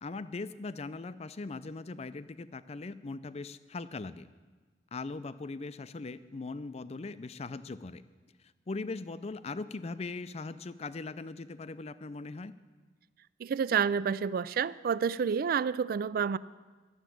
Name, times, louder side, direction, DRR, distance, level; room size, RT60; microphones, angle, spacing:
voice 1, 0.0-4.3 4.9-8.0 8.7-12.5, left 3 dB, 35° left, 14 dB, 0.5 m, -40 dB
voice 2, 13.4-16.4, right 6 dB, 55° right, 19 dB, 0.3 m, -29 dB
12.0 x 7.2 x 9.2 m, 1.4 s
head